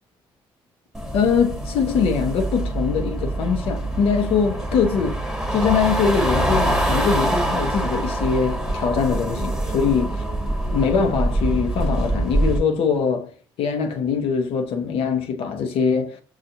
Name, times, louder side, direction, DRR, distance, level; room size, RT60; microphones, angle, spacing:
sound 1, 0.9-12.6, right 1 dB, 5° right, 1.1 m, -24 dB
voice 1, 1.1-5.2 5.5-10.1 10.7-16.2, left 6 dB, 75° left, 0.8 m, -22 dB
5.7 x 2.4 x 2.7 m
supercardioid pair, 75°, 10 cm